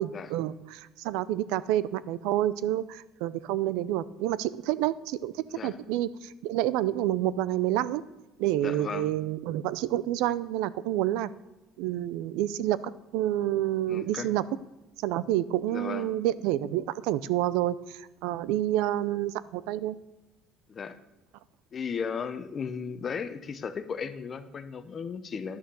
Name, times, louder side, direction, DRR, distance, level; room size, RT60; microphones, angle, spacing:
voice 1, 0.0-8.0 8.4-11.3 11.8-12.8 13.1-14.4 15.0-19.9, right 13 dB, 85° right, 17 dB, 0.5 m, -28 dB
voice 2, 8.5-9.1 13.9-14.3 15.7-16.1 20.7-21.0 21.7-25.6, left 6 dB, 25° left, 11 dB, 0.7 m, -35 dB
11.5 x 6.4 x 6.9 m, 1.0 s
cardioid pair, 165°, 0 cm